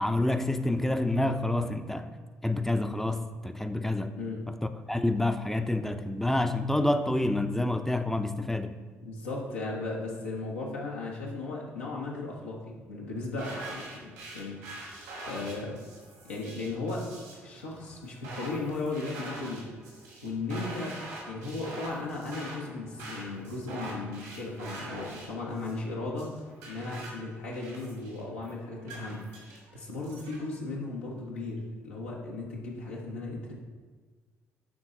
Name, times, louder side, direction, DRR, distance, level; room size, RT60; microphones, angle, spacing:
voice 1, 0.0-2.1 2.4-4.1 4.5-4.6 4.9-8.7, left 1 dB, 5° left, 0.5 m, -28 dB
voice 2, 9.0-14.6 15.3-15.8 16.2-17.1 17.4-19.7 20.2-26.4 26.7-29.3 29.7-33.5, left 3 dB, 85° left, 1.1 m, -36 dB
sound 1, 13.4-30.4, right 1 dB, 85° right, 1.8 m, -44 dB
10.0 x 4.0 x 3.8 m
figure-of-eight pair, 45°, 7 cm